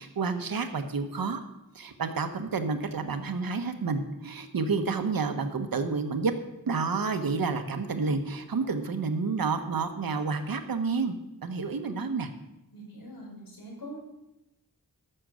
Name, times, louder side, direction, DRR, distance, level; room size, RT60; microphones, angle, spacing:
voice 1, 0.0-1.4 1.7-6.3 6.7-11.2 11.4-12.3, right 4 dB, 75° right, 8 dB, 1.1 m, -29 dB
voice 2, 12.7-14.0, equal, 75° left, -3 dB, 5.2 m, -43 dB
13.5 x 6.6 x 6.3 m, 0.92 s
wide cardioid pair, 75°, 35 cm